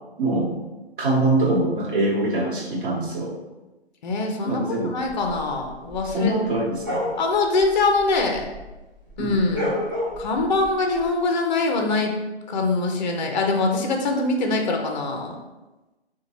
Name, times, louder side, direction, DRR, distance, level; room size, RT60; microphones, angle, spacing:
voice 1, 0.2-0.5 1.0-3.3 4.4-4.9 6.0-7.0 9.2-9.4, right 2 dB, 50° right, -3 dB, 1.1 m, -23 dB
voice 2, 4.0-6.3 7.2-8.5 9.2-9.8 10.2-12.1 12.5-15.4, left 3 dB, 45° left, 3 dB, 0.5 m, -23 dB
sound 1, 5.1-8.8 9.0-11.1, left 1 dB, 20° right, 0.4 m, -31 dB
3.7 x 2.2 x 3.0 m, 1.1 s
hypercardioid pair, 150°, 33 cm